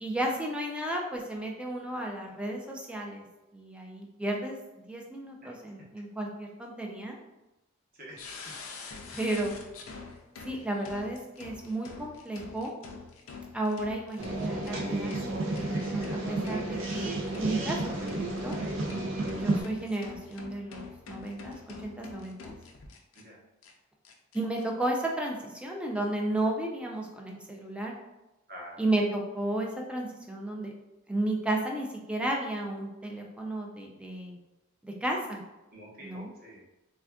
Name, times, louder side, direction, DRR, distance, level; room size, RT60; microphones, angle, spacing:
voice 1, 0.0-3.2 3.5-4.6 4.9-7.2 9.1-9.5 10.4-12.7 13.5-17.1 17.4-18.5 19.3-21.6 21.8-22.5 24.3-27.9 28.8-30.7 31.1-34.4 34.8-35.4 36.0-36.3, right 1 dB, 5° right, 0 dB, 0.3 m, -33 dB
voice 2, 7.9-8.4 19.2-19.3 23.1-23.4 28.5-28.8 35.7-36.6, equal, 45° right, -5 dB, 0.9 m, -47 dB
sound 1, 8.2-23.2 23.6-23.7 24.0-24.6, left 4 dB, 75° left, 0.4 m, -45 dB
sound 2, 14.2-19.6, right 2 dB, 60° right, 0.5 m, -32 dB
3.4 x 2.4 x 2.2 m, 1.0 s
head